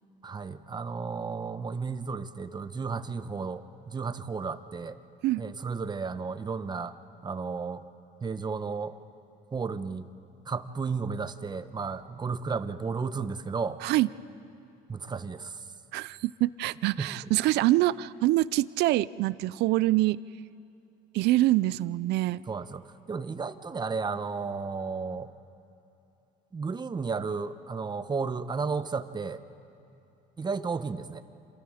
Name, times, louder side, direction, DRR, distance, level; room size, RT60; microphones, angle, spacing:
voice 1, 0.2-5.0 5.4-6.9 7.2-7.8 8.2-8.9 9.5-10.1 10.5-13.8 14.9-15.6 17.0-17.1 22.5-25.3 26.5-29.4 30.4-31.2, right 5 dB, 25° right, 11 dB, 1.0 m, -33 dB
voice 2, 15.9-20.2 21.1-22.4, right 17 dB, 80° right, 19 dB, 0.5 m, -25 dB
28.0 x 27.5 x 5.0 m, 2.8 s
cardioid pair, 110°, 17 cm